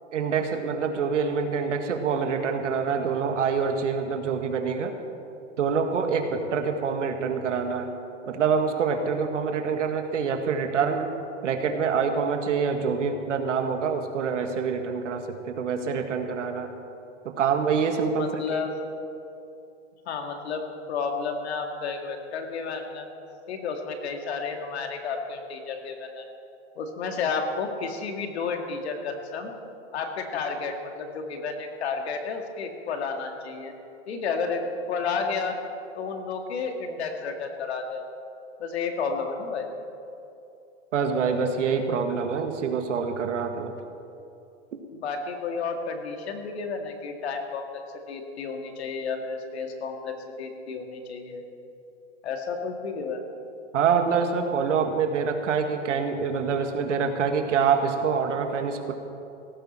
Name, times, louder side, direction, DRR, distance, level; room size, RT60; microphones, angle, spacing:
voice 1, 0.1-4.9 5.6-7.9 8.3-11.1 11.4-16.7 17.4-18.6 40.9-43.7 53.7-58.9, right 6 dB, 90° right, 5 dB, 1.8 m, -26 dB
voice 2, 18.1-18.7 20.1-20.6 20.9-23.1 23.5-26.3 26.8-29.5 29.9-33.7 34.1-35.6 36.0-38.1 38.6-39.7 45.0-47.6 48.1-51.4 52.2-53.3, left 5 dB, 65° left, 4 dB, 2.1 m, -31 dB
17.0 x 14.5 x 4.3 m, 2.7 s
hypercardioid pair, 160°, 35 cm